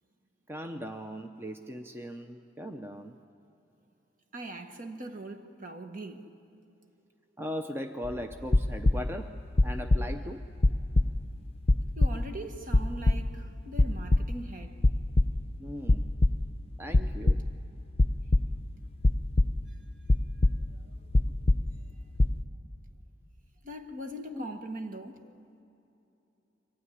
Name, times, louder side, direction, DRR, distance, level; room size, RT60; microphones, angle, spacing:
voice 1, 0.5-3.2 7.4-9.4 9.6-10.5 15.6-16.1 16.8-17.4 24.3-24.5, equal, 10° right, 0.6 m, -38 dB
voice 2, 4.3-6.3 12.0-14.8 20.8-21.1 23.6-25.3, right 1 dB, 45° right, 1.4 m, -41 dB
sound 1, 8.0-9.2 9.5-10.3 10.6-12.3 12.7-13.5 13.8-14.5 14.8-15.5 15.8-16.5 16.9-17.7 17.9-18.6 19.0-19.8 20.1-20.8 21.1-21.9 22.2-22.4, left 2 dB, 30° left, 0.6 m, -24 dB
24.0 x 16.0 x 10.0 m
head